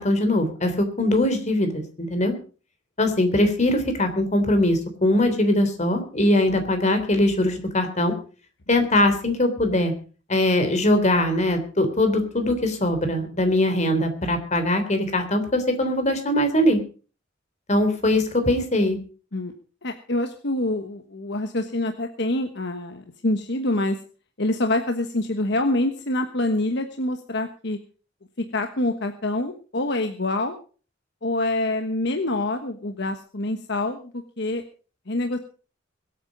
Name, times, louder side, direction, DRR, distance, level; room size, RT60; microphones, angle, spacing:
voice 1, 0.0-2.3 3.0-8.1 8.7-9.9 10.3-16.8 17.7-19.0, left 1 dB, 40° left, 7 dB, 3.4 m, -21 dB
voice 2, 19.8-24.0 24.4-27.8 28.5-30.6 31.2-34.1 34.4-34.6 35.1-35.4, left 2 dB, 60° left, 6 dB, 1.3 m, -26 dB
22.5 x 8.9 x 5.2 m, 0.39 s
head